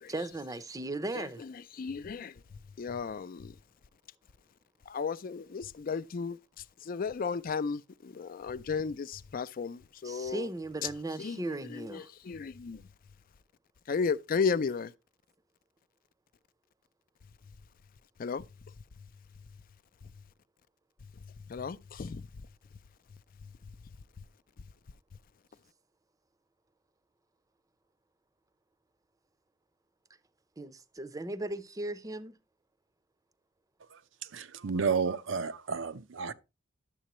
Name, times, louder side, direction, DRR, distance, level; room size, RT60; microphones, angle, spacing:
voice 1, 0.1-1.4 10.0-12.1 30.6-32.4, right 2 dB, 20° right, 0.6 m, -37 dB
voice 2, 1.2-2.4 2.8-3.6 4.9-10.5 10.8-10.9 11.2-12.8 13.9-14.9 18.2-18.4 21.2-22.3 23.4-23.5, left 5 dB, 45° left, 0.4 m, -34 dB
voice 3, 34.3-36.3, right 5 dB, 85° right, 0.6 m, -31 dB
11.5 x 7.4 x 3.0 m
head